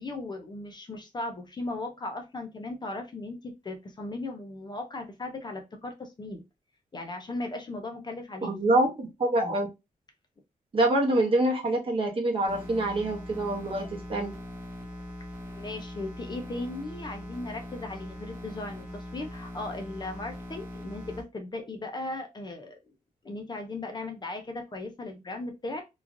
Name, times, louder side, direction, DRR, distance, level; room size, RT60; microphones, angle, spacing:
voice 1, 0.0-6.4 6.9-8.5 15.4-22.8 23.2-25.8, left 2 dB, 30° left, 4 dB, 0.5 m, -37 dB
voice 2, 8.5-9.7 10.7-14.3, right 1 dB, 40° right, 0 dB, 0.9 m, -25 dB
sound 1, 12.5-21.2, left 1 dB, 10° right, 1.1 m, -41 dB
3.1 x 2.4 x 2.5 m, 0.23 s
wide cardioid pair, 170°, 14 cm